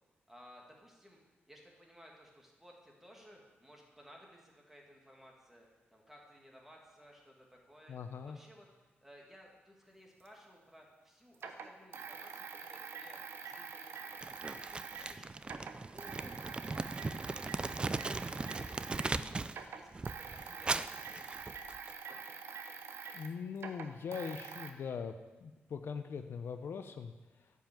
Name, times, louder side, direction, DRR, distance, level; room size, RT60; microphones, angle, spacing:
voice 1, 0.3-1.2 1.5-14.2 14.5-18.8 19.1-21.5, equal, 5° right, -1 dB, 2.3 m, -59 dB
voice 2, 7.9-8.4 23.1-25.2 25.4-27.1, left 6 dB, 65° left, 8 dB, 0.6 m, -41 dB
sound 1, 10.3-10.4 11.3-15.2 15.4-19.2 19.5-24.7, right 5 dB, 70° right, 0.9 m, -46 dB
Crumpling crinkling, 14.2-19.6 19.9-21.9, right 3 dB, 25° right, 0.4 m, -38 dB
10.0 x 5.6 x 7.5 m, 1.1 s
cardioid pair, 100°, 4 cm